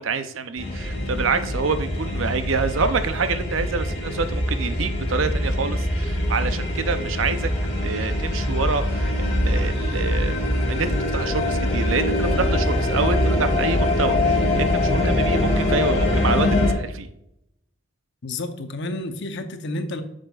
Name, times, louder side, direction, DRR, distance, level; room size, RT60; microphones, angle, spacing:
voice 1, 0.0-7.5 7.8-10.4 10.7-17.1, right 4 dB, 70° right, 10 dB, 0.6 m, -27 dB
sound 1, 0.6-16.7, left 1 dB, 30° left, 1.8 m, -23 dB
voice 2, 18.2-20.0, left 2 dB, 60° left, 8 dB, 0.8 m, -30 dB
7.8 x 6.4 x 2.4 m, 0.80 s
head